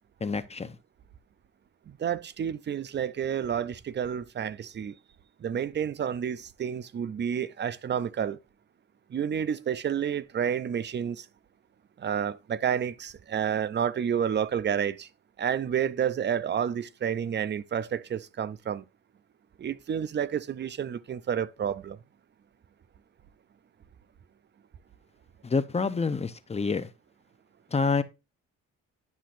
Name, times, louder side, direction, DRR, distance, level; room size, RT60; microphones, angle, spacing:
voice 1, 0.2-0.8 25.4-26.9 27.7-28.0, left 4 dB, 20° left, 0.7 m, -27 dB
voice 2, 1.9-5.0 5.4-8.4 9.1-11.3 12.0-15.1 15.4-18.8 19.6-22.0, right 8 dB, 35° right, 0.5 m, -30 dB
10.5 x 5.9 x 2.5 m
cardioid pair, 90°, 30 cm